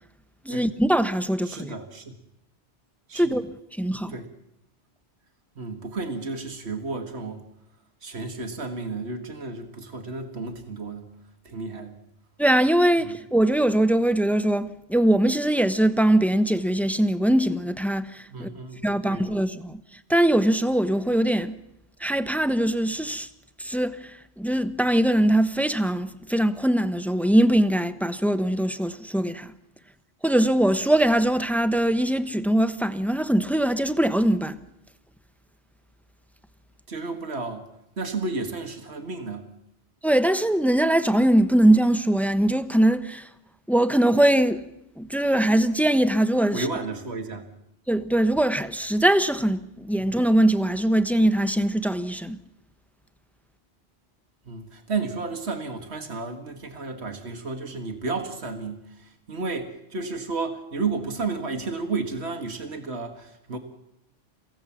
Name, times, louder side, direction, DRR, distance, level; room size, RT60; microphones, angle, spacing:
voice 1, 0.4-1.7 3.1-3.4 3.8-4.2 12.4-18.5 18.8-19.8 20.1-21.6 22.0-23.3 23.6-29.5 30.2-34.6 40.0-43.3 43.7-44.6 45.0-46.7 47.9-52.4, right 1 dB, ahead, 0.9 m, -22 dB
voice 2, 1.5-2.1 3.1-3.4 4.1-4.3 5.6-7.4 8.0-11.1 11.5-11.9 13.0-13.1 18.3-19.3 36.9-37.7 38.0-39.4 46.5-47.5 54.5-63.6, right 3 dB, 70° right, 2.2 m, -32 dB
30.0 x 16.5 x 7.3 m
omnidirectional pair, 1.1 m